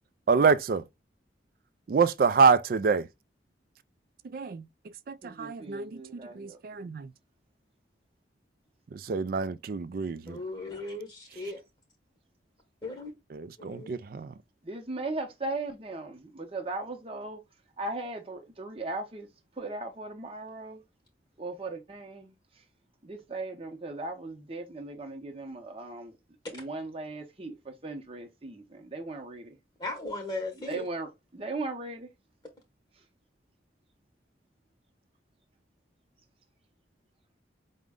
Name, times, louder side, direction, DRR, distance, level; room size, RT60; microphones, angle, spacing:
voice 1, 0.3-0.8 1.9-3.1 4.3-4.6 5.1-6.0 6.4-7.1 8.9-10.4 13.3-14.3, right 5 dB, 50° right, 0.3 m, -26 dB
voice 2, 5.2-6.6 14.6-17.4 17.8-19.3 19.6-20.8 21.4-22.3 23.0-26.1 26.5-29.6 30.7-32.1, right 2 dB, 30° right, 0.7 m, -38 dB
voice 3, 10.3-11.6 12.8-13.1 13.6-14.0 29.8-30.8, left 2 dB, 25° left, 0.8 m, -37 dB
5.0 x 2.1 x 3.5 m
head